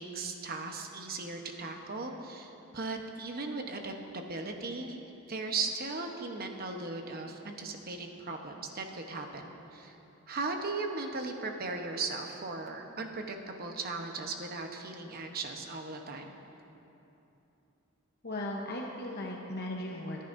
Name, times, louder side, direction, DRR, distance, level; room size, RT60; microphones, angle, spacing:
voice 1, 0.0-5.0 5.3-10.0 10.3-16.4, right 3 dB, 45° right, 3 dB, 1.0 m, -37 dB
voice 2, 18.2-20.2, left 1 dB, 50° left, -1 dB, 1.0 m, -37 dB
25.0 x 10.5 x 2.7 m, 2.9 s
head